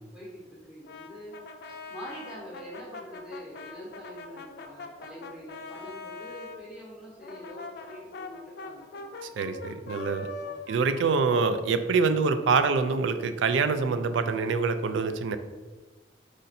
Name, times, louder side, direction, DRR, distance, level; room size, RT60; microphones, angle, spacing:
voice 1, 0.1-1.4 1.9-9.1 10.4-10.6, equal, 5° right, -8 dB, 1.1 m, -44 dB
Brass instrument, 0.8-6.6 7.2-12.0, left 3 dB, 60° left, 0.4 m, -42 dB
voice 2, 9.4-10.3 10.7-15.4, right 4 dB, 80° right, 10 dB, 0.4 m, -25 dB
5.0 x 2.6 x 4.1 m, 1.2 s
head